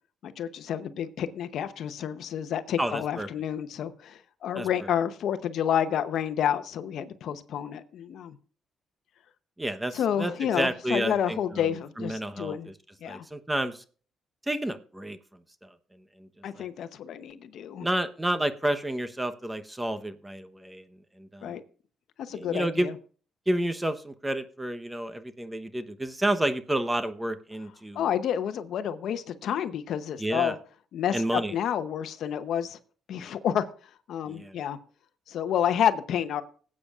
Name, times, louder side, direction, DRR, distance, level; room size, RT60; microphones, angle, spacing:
voice 1, 0.2-8.4 9.9-12.7 13.0-13.2 16.4-17.9 21.4-21.6 22.2-22.9 27.9-30.6 30.9-32.8 33.1-33.7 34.1-34.8 35.3-36.4, left 9 dB, 70° left, 11 dB, 0.8 m, -29 dB
voice 2, 2.8-3.3 4.5-4.7 9.6-11.7 12.0-12.5 13.0-13.8 14.4-15.7 16.2-16.7 17.8-20.8 21.2-21.6 22.3-22.9 23.5-28.1 30.2-30.5 31.1-31.5 34.3-34.6, right 1 dB, 10° right, 10 dB, 1.0 m, -30 dB
18.0 x 8.6 x 2.4 m, 0.41 s
cardioid pair, 90°, 0 cm